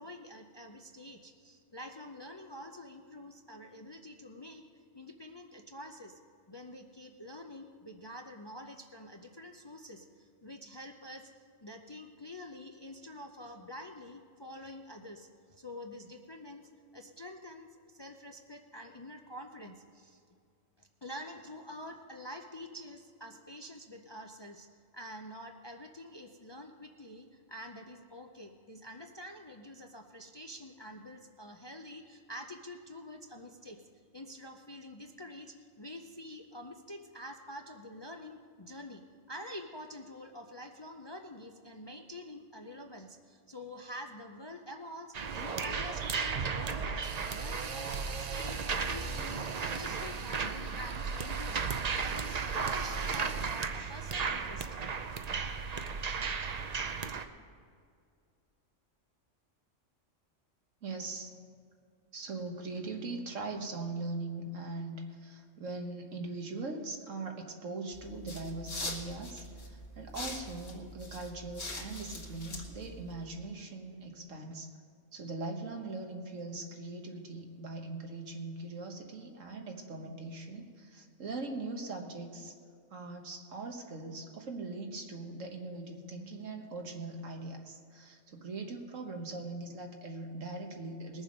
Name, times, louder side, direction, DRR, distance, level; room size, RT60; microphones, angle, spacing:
voice 1, 0.0-4.6 4.9-6.2 6.5-11.3 11.6-20.2 20.8-24.7 24.9-33.8 34.1-39.0 39.3-48.6 48.9-51.6 52.0-54.7, left 1 dB, 30° left, 4 dB, 0.5 m, -47 dB
sound 1, 45.1-57.3, right 5 dB, 45° right, 0.6 m, -34 dB
voice 2, 60.8-61.3 62.1-74.7 75.1-82.5 82.9-91.2, right 3 dB, 85° right, 3 dB, 1.7 m, -41 dB
sound 2, 67.9-73.4, left 2 dB, 60° left, 2.0 m, -43 dB
20.5 x 7.2 x 5.3 m, 2.3 s
omnidirectional pair, 1.3 m